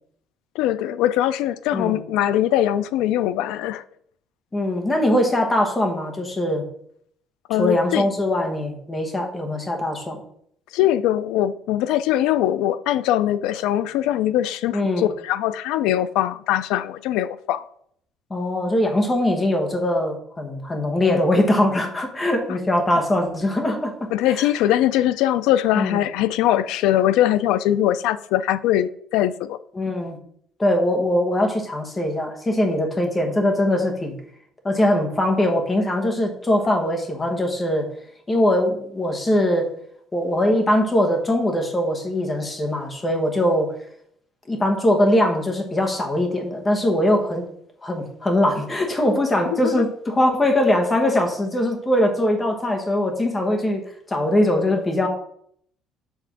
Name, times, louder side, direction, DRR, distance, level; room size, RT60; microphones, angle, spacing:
voice 1, 0.6-3.8 7.5-8.1 10.7-17.6 24.1-29.6 49.5-49.8, left 12 dB, 85° left, 0.4 m, -21 dB
voice 2, 4.5-6.6 7.6-10.2 14.7-15.1 18.3-24.1 25.7-26.1 29.7-30.2 30.6-34.2 34.6-37.9 38.3-39.7 40.1-43.7 44.5-47.4 47.8-53.8 54.1-55.1, left 1 dB, 15° left, 1.1 m, -21 dB
7.1 x 3.5 x 5.9 m
cardioid pair, 170°, 0 cm